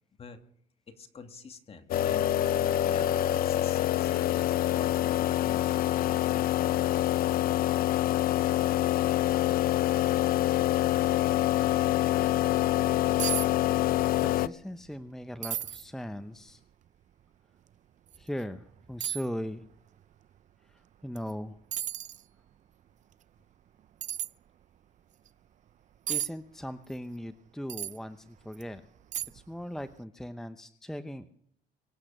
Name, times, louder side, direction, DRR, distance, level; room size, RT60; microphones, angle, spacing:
voice 1, 0.9-2.3 2.9-6.3, left 5 dB, 35° left, 6 dB, 2.6 m, -47 dB
sound 1, 1.9-14.5, left 13 dB, 60° left, 0.6 m, -26 dB
sound 2, 13.2-13.5 13.8-14.3 14.7-14.8 15.4-15.9 16.5-16.6 18.1-18.2 19.0-19.3 21.2-21.3 21.7-22.2 24.0-24.3 26.1-26.3 27.7-28.0 28.5-28.6 29.1-29.5 29.8-29.9, right 11 dB, 45° right, 0.5 m, -33 dB
voice 2, 14.2-16.6 18.1-19.7 20.6-21.6 26.1-28.8 29.3-31.3, equal, 5° left, 10 dB, 0.8 m, -39 dB
24.5 x 8.3 x 6.6 m, 0.70 s
cardioid pair, 110°, 17 cm